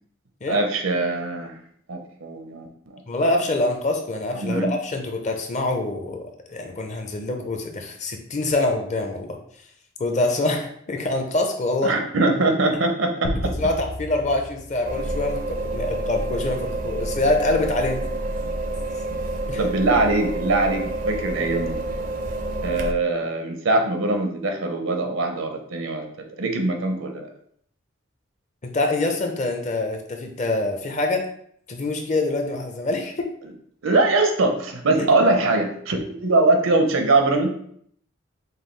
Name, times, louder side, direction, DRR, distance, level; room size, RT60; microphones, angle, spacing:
voice 1, 0.5-1.6 1.9-2.7 4.4-4.7 11.8-13.5 19.6-21.8 22.6-26.1 26.4-27.3 33.8-37.5, right 2 dB, 80° right, 3 dB, 0.7 m, -22 dB
voice 2, 3.1-6.2 6.5-9.4 10.0-11.9 13.5-18.0 19.5-19.6 28.6-31.3 31.7-33.3 34.9-35.2, left 2 dB, 35° left, 3 dB, 0.5 m, -25 dB
sound 1, 13.2-15.8, left 1 dB, 75° left, 0.7 m, -33 dB
sound 2, 14.8-22.9, right 2 dB, 40° right, 0.4 m, -28 dB
5.4 x 2.3 x 3.2 m, 0.66 s
head